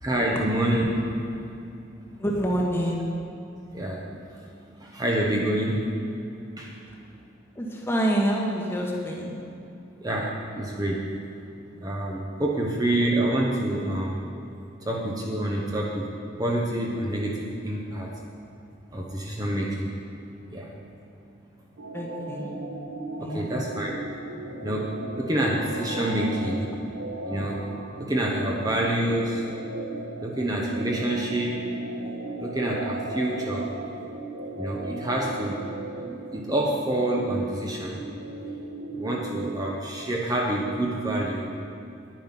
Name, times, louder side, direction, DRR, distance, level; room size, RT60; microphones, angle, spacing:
voice 1, 0.0-1.2 2.1-2.2 3.7-4.0 4.4-4.5 4.8-5.9 6.6-6.8 10.0-11.0 11.8-14.2 14.8-16.1 16.4-18.1 18.9-19.9 20.5-20.7 23.2-24.0 24.6-26.7 27.2-27.6 28.0-29.5 30.2-31.7 32.4-33.7 34.6-35.6 35.9-36.0 36.3-38.1 38.9-41.5, right 1 dB, 20° right, -2 dB, 1.0 m, -27 dB
voice 2, 2.2-3.1 6.9-7.0 7.5-9.4 21.9-22.5 23.2-23.6, equal, 10° left, -1 dB, 1.3 m, -27 dB
sound 1, 21.8-40.8, right 2 dB, 80° right, 1.1 m, -37 dB
10.0 x 9.1 x 5.9 m, 2.7 s
head